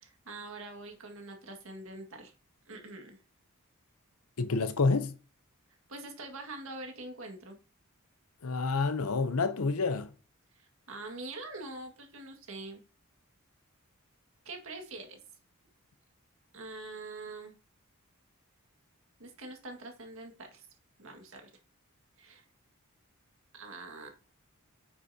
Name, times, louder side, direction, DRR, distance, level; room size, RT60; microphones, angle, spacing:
voice 1, 0.0-2.3 2.7-3.2 5.9-7.6 10.6-12.8 14.5-15.2 16.5-17.5 19.2-20.7 21.0-21.5 22.2-22.4 23.5-24.1, right 2 dB, 65° right, 2.0 m, -44 dB
voice 2, 4.4-5.2 8.4-10.1, left 4 dB, 85° left, 0.8 m, -28 dB
9.6 x 6.9 x 2.8 m
head